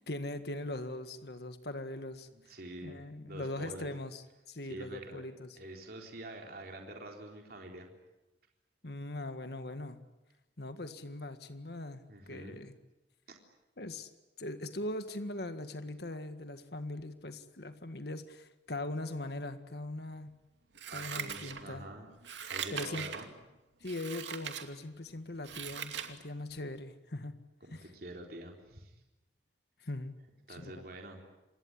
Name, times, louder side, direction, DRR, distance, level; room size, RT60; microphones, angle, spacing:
voice 1, 0.0-2.5 2.8-5.6 8.8-10.0 10.6-12.7 13.8-14.1 14.4-20.3 20.9-21.8 22.7-23.1 23.8-27.4 27.7-27.9 29.8-30.1 30.5-30.8, left 1 dB, 60° left, 9 dB, 1.8 m, -41 dB
voice 2, 2.3-3.0 3.2-3.9 4.7-5.2 5.6-7.9 12.1-12.6 13.3-13.4 20.9-22.1 22.5-23.3 27.7-28.9 30.5-31.2, right 1 dB, 55° right, 2 dB, 3.8 m, -46 dB
Scissors, 20.7-21.8 22.2-23.3 23.8-24.6 25.1-26.1 26.5-26.6, right 7 dB, 90° right, 2.6 m, -40 dB
27.5 x 21.0 x 9.7 m, 1.0 s
head